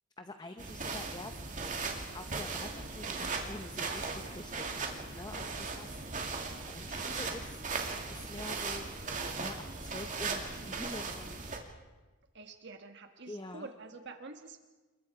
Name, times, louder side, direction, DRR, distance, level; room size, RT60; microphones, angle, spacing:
voice 1, 0.2-1.6 2.1-7.6 8.1-11.4 13.3-13.7, left 2 dB, 20° left, 8 dB, 0.8 m, -46 dB
sound 1, 0.6-11.6, right 4 dB, 35° right, 2.4 m, -38 dB
voice 2, 5.3-5.6 12.3-14.6, right 3 dB, 50° right, 6 dB, 1.4 m, -48 dB
28.5 x 21.5 x 4.8 m, 1.2 s
head